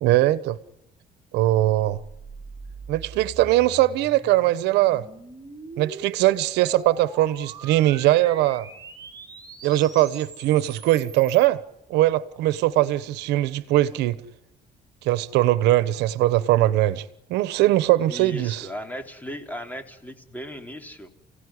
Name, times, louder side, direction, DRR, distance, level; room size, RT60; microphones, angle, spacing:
voice 1, 0.0-0.6 1.3-2.0 2.9-5.0 5.8-8.7 9.6-11.6 11.9-14.2 15.0-17.0 17.3-18.7, right 15 dB, 90° right, 1.2 m, -21 dB
sound 1, 1.6-11.5, right 4 dB, 25° right, 4.9 m, -43 dB
voice 2, 18.1-21.1, equal, 10° left, 3.7 m, -37 dB
30.0 x 17.0 x 9.9 m
cardioid pair, 110°, 17 cm